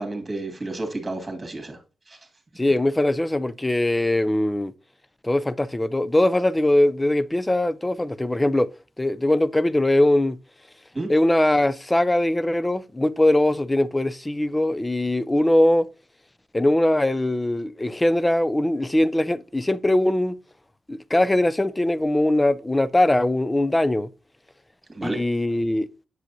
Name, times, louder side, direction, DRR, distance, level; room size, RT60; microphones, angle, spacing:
voice 1, 0.0-1.8 2.1-2.2 10.9-11.1 24.9-25.2, right 2 dB, 25° right, 2.2 m, -31 dB
voice 2, 2.6-4.7 5.2-10.4 11.1-15.9 16.5-20.3 20.9-24.1 25.0-25.9, left 1 dB, 15° left, 0.5 m, -21 dB
7.7 x 5.0 x 2.7 m
cardioid pair, 80°, 0 cm